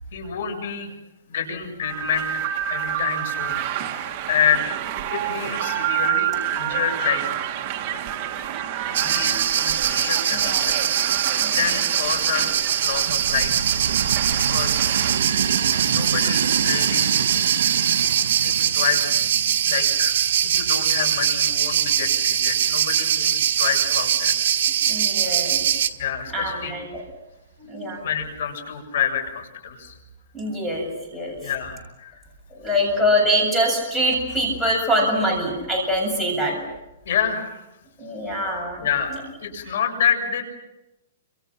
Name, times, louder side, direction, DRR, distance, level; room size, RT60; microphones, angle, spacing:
voice 1, 0.1-0.9 1.3-3.8 4.3-4.6 5.1-7.2 7.9-8.0 8.9-11.2 11.5-12.5 12.8-13.9 14.3-14.8 15.3-15.5 15.9-17.4 18.4-19.1 19.7-20.1 20.4-24.3 26.0-26.7 28.0-30.0 31.4-32.2 37.0-37.6 38.8-39.1 39.4-40.4, left 8 dB, 60° left, 5 dB, 7.0 m, -28 dB
sound 1, 1.8-15.2, right 12 dB, 30° right, 1.7 m, -29 dB
voice 2, 3.6-4.1 10.3-10.7 11.4-11.6 24.8-25.7 26.3-27.0 27.6-28.0 30.3-31.5 32.5-36.6 38.0-39.2 39.6-39.7, equal, 5° left, -1 dB, 7.3 m, -24 dB
sound 2, 8.9-25.9, right 9 dB, 55° right, 1.7 m, -22 dB
sound 3, 13.1-24.2 24.8-25.5 26.4-26.6 26.9-27.0, right 7 dB, 80° right, 1.7 m, -30 dB
30.0 x 27.0 x 6.0 m, 0.96 s
hypercardioid pair, 170°, 0 cm